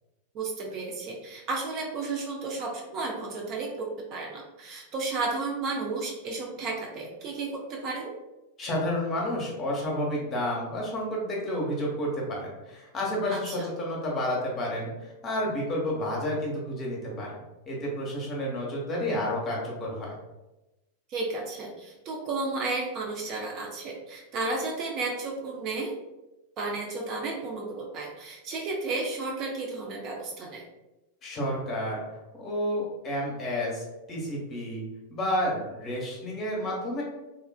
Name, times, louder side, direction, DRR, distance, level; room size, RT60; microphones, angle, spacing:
voice 1, 0.3-8.1 13.3-13.7 21.1-26.0 26.6-30.6, right 3 dB, 35° right, -1 dB, 0.5 m, -33 dB
voice 2, 8.6-17.3 17.7-20.1 31.2-32.0 32.3-34.8 35.1-37.0, left 1 dB, 25° left, -3 dB, 1.0 m, -30 dB
3.1 x 2.4 x 2.3 m, 1.0 s
figure-of-eight pair, 90°, 0 cm